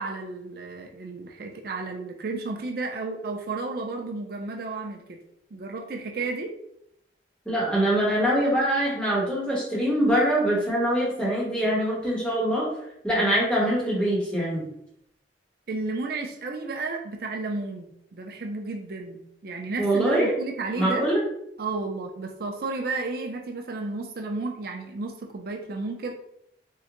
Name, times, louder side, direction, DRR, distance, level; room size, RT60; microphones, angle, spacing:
voice 1, 0.0-5.2 5.5-6.5 15.7-21.1 21.6-26.1, right 3 dB, 55° right, 3 dB, 0.5 m, -32 dB
voice 2, 7.5-12.7 13.0-14.7 19.8-20.3 20.8-21.2, right 1 dB, 5° left, -5 dB, 1.0 m, -23 dB
3.7 x 2.1 x 2.9 m, 0.74 s
head